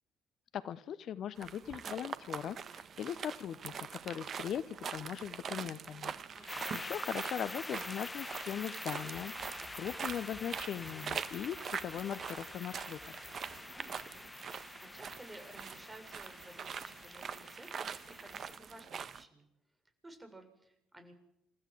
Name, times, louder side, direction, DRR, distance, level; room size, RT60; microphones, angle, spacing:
voice 1, 0.5-6.1 6.7-13.0, left 9 dB, 55° left, 16 dB, 0.9 m, -40 dB
sound 1, 1.4-19.2, right 7 dB, 50° right, 1.4 m, -44 dB
voice 2, 6.3-6.6 13.7-19.5 20.0-21.1, right 1 dB, 20° right, 7 dB, 7.0 m, -55 dB
sound 2, 6.5-18.6, left 2 dB, 15° left, 1.4 m, -46 dB
sound 3, 9.1-14.3 16.1-16.4 16.7-16.8, left 3 dB, 35° left, 3.2 m, -62 dB
28.5 x 15.0 x 7.9 m, 0.83 s
hypercardioid pair, 50°, 0 cm